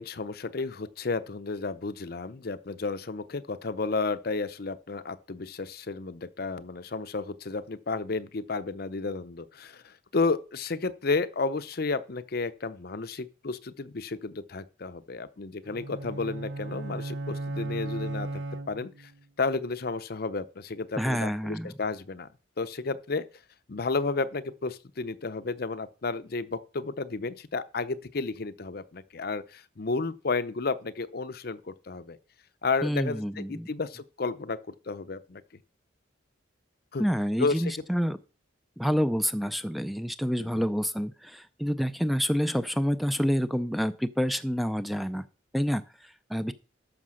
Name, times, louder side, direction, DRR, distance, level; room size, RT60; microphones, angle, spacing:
voice 1, 0.0-18.4 18.7-19.1 19.4-22.3 22.6-23.3 23.7-32.2 32.6-34.6 34.9-35.4 36.9-37.0 37.4-37.7 40.4-40.7, left 3 dB, 55° left, 0.7 m, -32 dB
sound 1, 15.6-19.2, right 2 dB, 85° right, 0.7 m, -36 dB
voice 2, 21.0-21.7 32.8-33.7 37.0-38.2 38.8-45.2 45.5-46.5, equal, ahead, 0.4 m, -28 dB
13.0 x 5.1 x 6.3 m
head